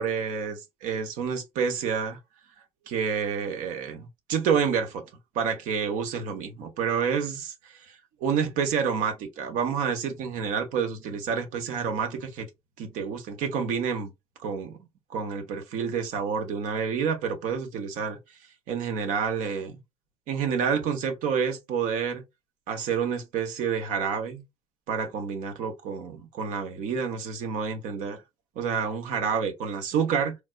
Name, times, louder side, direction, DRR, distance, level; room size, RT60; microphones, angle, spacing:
voice 1, 0.0-2.2 2.9-5.0 5.3-12.5 12.8-14.1 14.4-14.8 15.1-18.2 18.7-19.8 20.3-22.2 22.7-24.4 24.9-28.2 28.6-30.4, right 6 dB, 70° right, 0.9 m, -29 dB
3.3 x 2.3 x 2.3 m
supercardioid pair, 85°, 14 cm